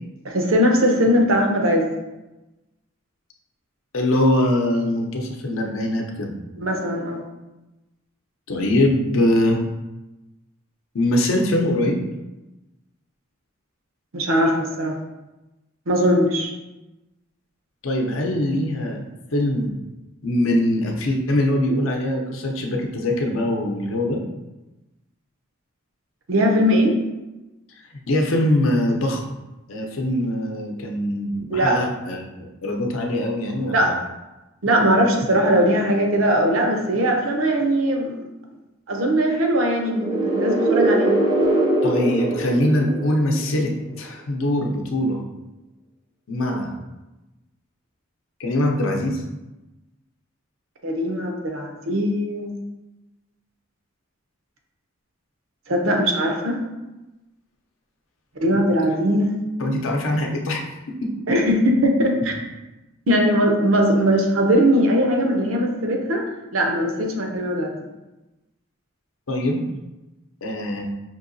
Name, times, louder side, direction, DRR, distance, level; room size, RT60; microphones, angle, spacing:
voice 1, 0.2-1.9 6.6-7.2 14.1-15.0 15.9-16.5 26.3-27.0 31.5-31.7 33.7-33.9 34.6-38.2 38.9-41.2 50.8-52.5 55.7-56.6 58.4-59.4 61.3-62.4 63.1-66.2 66.5-67.7, equal, 80° right, 2 dB, 0.7 m, -20 dB
voice 2, 3.9-6.3 8.5-9.6 10.9-12.0 17.8-19.0 19.3-19.7 20.2-24.2 28.1-29.2 29.7-33.9 41.8-45.2 46.3-46.7 48.4-49.2 59.6-60.6 60.9-61.1 69.3-69.6 70.4-70.8, left 1 dB, 75° left, 1 dB, 0.6 m, -22 dB
sound 1, 39.8-43.6, right 2 dB, 20° right, 0.4 m, -22 dB
5.3 x 2.8 x 2.6 m, 1.0 s
head